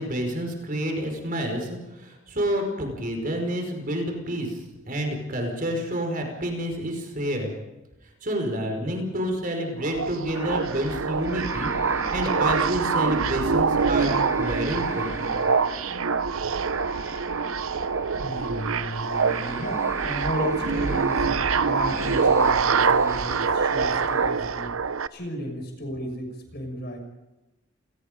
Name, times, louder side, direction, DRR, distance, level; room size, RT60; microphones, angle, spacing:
voice 1, 0.0-4.6 4.9-7.5 8.2-11.7 12.1-15.4, equal, 40° right, 3 dB, 5.1 m, -29 dB
sound 1, 9.8-25.1, right 5 dB, 85° right, 0.8 m, -25 dB
sound 2, 10.3-24.3, right 1 dB, 15° right, 3.4 m, -39 dB
voice 2, 18.2-24.7 25.1-27.0, equal, 50° left, 4 dB, 6.1 m, -33 dB
29.0 x 20.0 x 5.3 m, 1.0 s
head